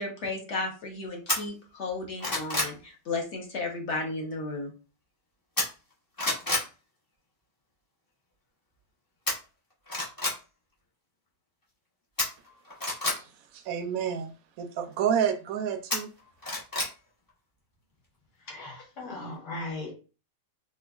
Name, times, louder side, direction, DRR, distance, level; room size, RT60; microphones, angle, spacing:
voice 1, 0.0-4.7, left 3 dB, 50° left, 1.0 m, -34 dB
sound 1, 1.3-1.4 1.9-2.8 5.6-5.9 6.2-6.7 9.3-9.4 9.8-10.4 12.2-13.2 15.9-16.9 17.3-17.4, left 2 dB, 25° left, 0.5 m, -28 dB
voice 2, 13.1-16.1, right 8 dB, 70° right, 0.9 m, -30 dB
voice 3, 18.4-19.9, left 2 dB, 70° left, 1.8 m, -38 dB
4.4 x 2.3 x 2.4 m
omnidirectional pair, 1.8 m